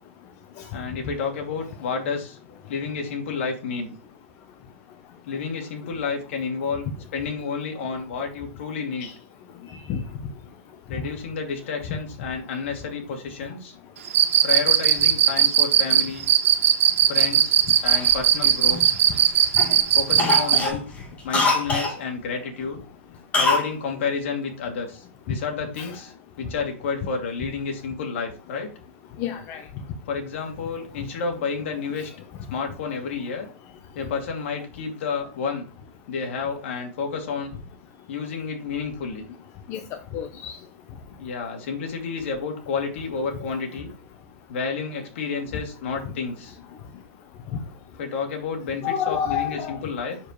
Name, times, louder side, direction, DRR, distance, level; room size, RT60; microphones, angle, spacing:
voice 1, 0.7-2.4 2.7-3.9 5.3-6.9 7.1-9.1 10.9-13.7 14.4-16.3 17.1-19.0 19.9-20.8 21.2-22.8 23.3-28.7 30.1-32.1 32.5-33.5 33.9-35.6 36.1-37.5 38.1-39.3 41.2-43.9 44.5-46.6 48.0-50.2, left 5 dB, 60° left, 2.6 m, -30 dB
voice 2, 9.7-10.0 25.8-25.9 29.2-29.6 39.7-39.8 40.1-40.6 48.8-49.8, left 8 dB, 35° left, 0.9 m, -29 dB
Cricket, 14.1-20.7, right 10 dB, 70° right, 1.9 m, -17 dB
Cough, 17.9-19.2 19.6-19.8 20.1-22.0 23.3-23.7 24.0-24.1, left 3 dB, 20° left, 2.0 m, -24 dB
7.2 x 6.8 x 3.1 m
supercardioid pair, 145°, 7 cm